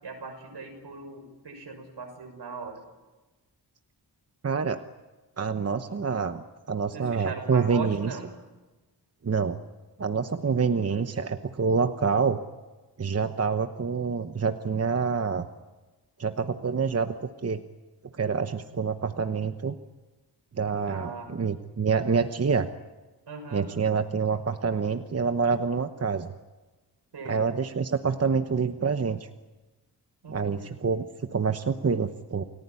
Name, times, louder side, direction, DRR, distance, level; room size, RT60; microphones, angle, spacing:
voice 1, 0.0-2.8 6.8-8.3 20.9-21.3 23.3-23.7 27.1-27.4 30.2-30.7, right 4 dB, 75° right, 5 dB, 6.5 m, -39 dB
voice 2, 4.4-4.8 5.4-8.1 9.2-9.6 10.0-12.4 13.0-15.5 16.2-17.1 17.4-17.6 18.1-19.8 20.6-22.7 23.5-26.3 27.2-29.3 30.3-32.4, right 5 dB, 35° right, 8 dB, 1.0 m, -27 dB
29.5 x 19.0 x 9.7 m, 1.2 s
wide cardioid pair, 175°, 41 cm